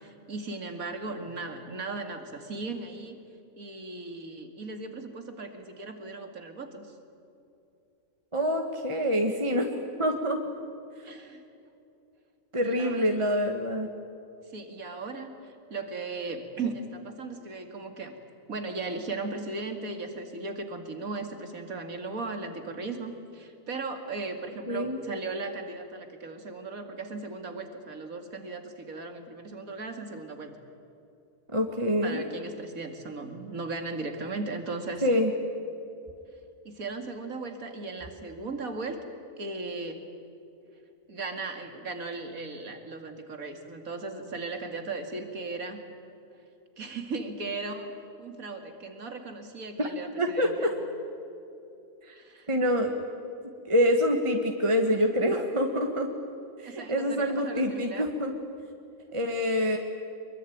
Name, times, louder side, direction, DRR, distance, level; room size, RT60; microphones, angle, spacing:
voice 1, 0.0-3.2 3.6-6.9 11.0-11.4 12.6-13.0 14.5-18.2 18.5-30.6 32.0-35.1 36.6-39.0 39.4-40.0 41.1-45.8 46.8-47.9 48.2-50.7 52.1-52.5 56.6-58.1, right 3 dB, 85° right, 5 dB, 2.8 m, -37 dB
voice 2, 8.3-9.7 10.0-10.4 12.5-13.9 24.7-25.0 31.5-32.2 35.0-35.3 49.8-49.9 50.2-50.7 52.1-52.2 52.5-52.9 53.7-56.1 56.6-58.3 59.1-59.8, equal, 20° right, 3 dB, 1.6 m, -26 dB
24.0 x 22.5 x 9.5 m, 2.7 s
omnidirectional pair, 1.4 m